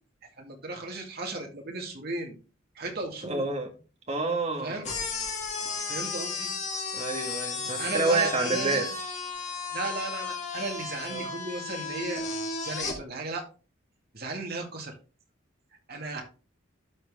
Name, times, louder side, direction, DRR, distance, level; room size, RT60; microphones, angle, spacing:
voice 1, 0.4-2.4 2.8-3.4 4.6-4.9 5.9-6.5 7.8-8.9 9.7-12.2 12.6-13.4 14.1-14.9 15.9-16.2, right 2 dB, 55° right, 2 dB, 2.3 m, -35 dB
voice 2, 3.2-3.7 4.1-4.8 6.9-8.9 11.1-11.3, right 3 dB, 35° right, 3 dB, 1.8 m, -28 dB
sound 1, 4.8-13.0, left 4 dB, 35° left, 2.0 m, -34 dB
12.0 x 4.6 x 3.6 m, 0.34 s
head